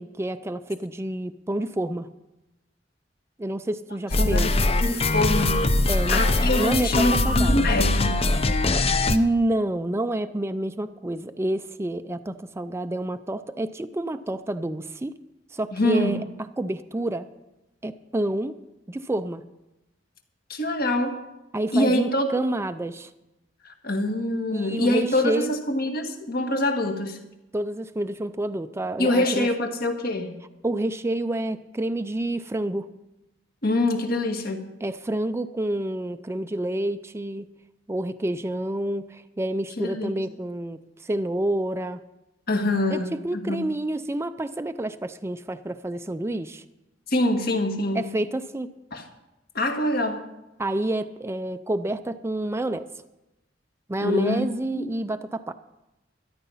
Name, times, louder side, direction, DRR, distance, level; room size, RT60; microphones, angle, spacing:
voice 1, 0.0-2.1 3.4-4.5 5.9-6.2 6.6-7.7 9.1-15.1 15.5-16.2 16.6-17.3 17.8-18.5 18.9-19.4 21.5-23.1 24.5-25.5 27.5-29.5 30.6-32.9 34.8-37.5 37.9-42.0 42.9-46.6 47.9-48.7 50.6-52.9 53.9-55.5, right 1 dB, 15° right, 10 dB, 0.4 m, -28 dB
sound 1, 4.1-9.2, left 2 dB, 35° left, 0.7 m, -22 dB
voice 2, 4.2-4.5 4.8-5.6 6.1-8.2 15.7-16.2 20.5-21.2 21.7-22.3 23.6-27.2 29.0-30.3 33.6-34.7 39.8-40.1 42.5-43.6 47.1-48.1 48.9-49.0 49.5-50.2 54.0-54.5 54.7-54.9, left 1 dB, 55° left, 4 dB, 1.7 m, -24 dB
13.0 x 11.5 x 5.6 m, 0.96 s
head